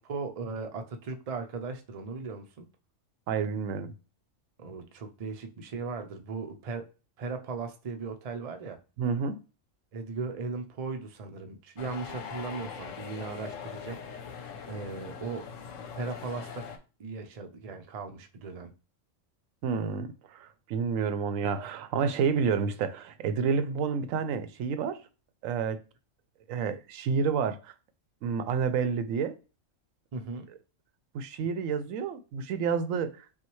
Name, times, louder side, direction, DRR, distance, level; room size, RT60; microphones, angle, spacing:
voice 1, 0.0-2.7 4.6-6.9 7.2-8.8 9.9-14.0 14.4-15.5 15.9-16.7 17.0-18.7 30.1-30.5, right 4 dB, 45° right, 0.5 m, -37 dB
voice 2, 3.3-3.9 9.0-9.4 19.6-25.0 25.4-25.8 26.5-27.7 28.2-29.4 31.1-33.1, right 6 dB, 85° right, 1.0 m, -29 dB
sound 1, 11.8-16.8, left 6 dB, 75° left, 1.1 m, -41 dB
5.7 x 2.3 x 3.1 m
omnidirectional pair, 1.3 m